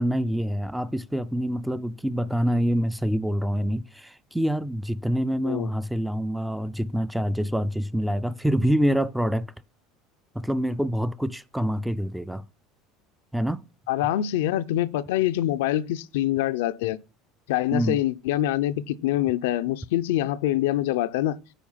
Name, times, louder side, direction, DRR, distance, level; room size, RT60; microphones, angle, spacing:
voice 1, 0.0-9.5 10.3-12.4 13.3-13.6 17.7-18.0, equal, ahead, 0.4 m, -26 dB
voice 2, 13.9-17.0 17.5-21.4, left 13 dB, 90° left, 0.5 m, -25 dB
9.3 x 4.3 x 5.6 m
supercardioid pair, 135°, 0 cm